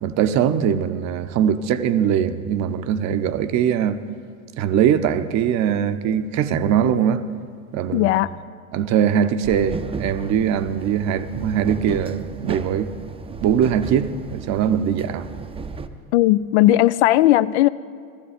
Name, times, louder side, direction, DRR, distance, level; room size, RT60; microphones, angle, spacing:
voice 1, 0.0-4.0 4.6-7.2 7.7-8.1 8.7-12.9 13.4-15.3, right 8 dB, 40° right, 0.8 m, -21 dB
voice 2, 7.9-8.3 16.1-17.7, left 15 dB, 50° left, 0.4 m, -16 dB
sound 1, 9.4-15.9, right 4 dB, 15° right, 0.6 m, -34 dB
16.0 x 15.0 x 5.1 m
figure-of-eight pair, 80°, 44 cm